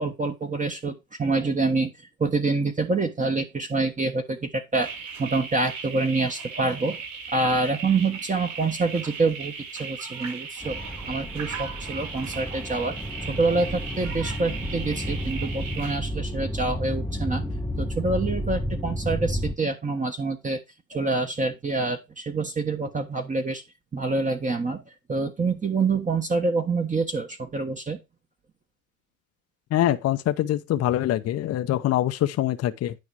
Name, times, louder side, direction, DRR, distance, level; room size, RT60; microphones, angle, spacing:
voice 1, 0.0-1.9 2.2-4.9 5.2-7.0 7.3-10.8 11.1-13.0 13.3-17.4 17.8-20.6 20.9-23.6 23.9-28.0, right 3 dB, 20° right, 1.2 m, -26 dB
sound 1, 4.8-16.0, right 6 dB, 50° right, 6.8 m, -37 dB
sound 2, 10.6-19.5, equal, 5° left, 0.7 m, -31 dB
voice 2, 29.7-33.0, left 13 dB, 35° left, 0.8 m, -24 dB
9.7 x 5.0 x 4.8 m
supercardioid pair, 100°, 41 cm